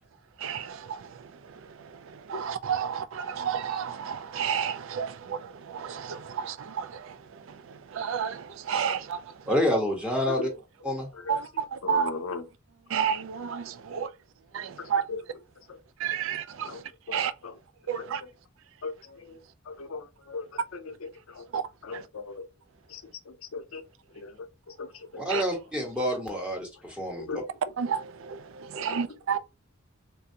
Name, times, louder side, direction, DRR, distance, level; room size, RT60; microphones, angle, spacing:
voice 1, 0.4-9.5 11.3-12.1 12.9-14.1 14.5-15.0 16.0-16.8 17.1-17.3 17.9-18.2 21.5-22.0 25.3-25.4 27.8-29.4, right 7 dB, 65° right, 0.4 m, -32 dB
voice 2, 9.5-10.5 10.8-11.1 25.2-27.3, equal, 5° right, 1.2 m, -28 dB
voice 3, 10.8-12.5 14.8-15.2 15.7-15.8 16.6-16.8 17.1-17.5 18.0-18.3 18.8-21.5 21.8-22.4 22.9-23.8 24.1-25.4 27.1-27.5 28.7-29.0 29.3-29.4, left 4 dB, 85° left, 0.6 m, -39 dB
3.3 x 2.5 x 2.7 m
head